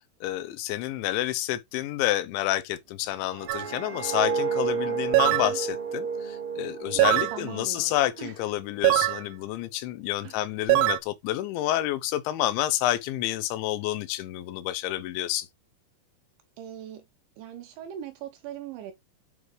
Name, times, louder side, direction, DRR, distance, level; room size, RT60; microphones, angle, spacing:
voice 1, 0.2-15.5, left 14 dB, 80° left, 2.9 m, -29 dB
sound 1, 3.1-8.2 8.5-8.9, right 5 dB, 55° right, 1.5 m, -31 dB
sound 2, 3.5-3.7 5.1-5.5 7.0-7.4 8.9-9.2 10.7-11.0, right 18 dB, 90° right, 3.3 m, -21 dB
voice 2, 5.2-5.6 6.9-8.4 10.2-10.4 16.6-17.0 17.4-18.9, right 10 dB, 75° right, 3.3 m, -40 dB
9.7 x 5.0 x 3.3 m
omnidirectional pair, 5.8 m